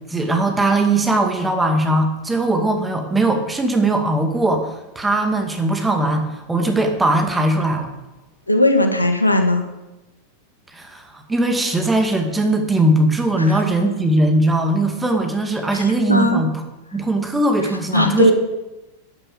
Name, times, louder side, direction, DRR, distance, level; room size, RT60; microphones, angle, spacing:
voice 1, 0.1-7.9 10.7-16.5 16.9-18.3, right 2 dB, 10° right, 4 dB, 2.3 m, -19 dB
voice 2, 8.5-9.6 15.7-15.8 16.1-16.4 17.9-18.3, left 1 dB, 85° left, 6 dB, 1.6 m, -16 dB
11.5 x 10.0 x 7.4 m, 1.0 s
figure-of-eight pair, 90°, 0 cm